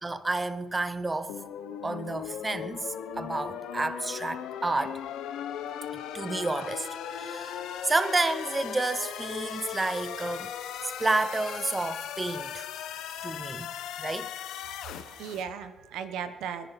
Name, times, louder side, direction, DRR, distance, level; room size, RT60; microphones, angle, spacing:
voice 1, 0.0-1.3 1.8-2.9 3.2-5.0 6.1-10.5 11.0-12.7 13.2-13.7 14.0-14.3, right 2 dB, 20° right, 0.7 m, -30 dB
sound 1, 1.3-15.4, left 9 dB, 90° left, 1.1 m, -38 dB
voice 2, 14.7-16.7, right 7 dB, 90° right, 0.9 m, -37 dB
25.0 x 10.5 x 4.1 m
cardioid pair, 90°, 0 cm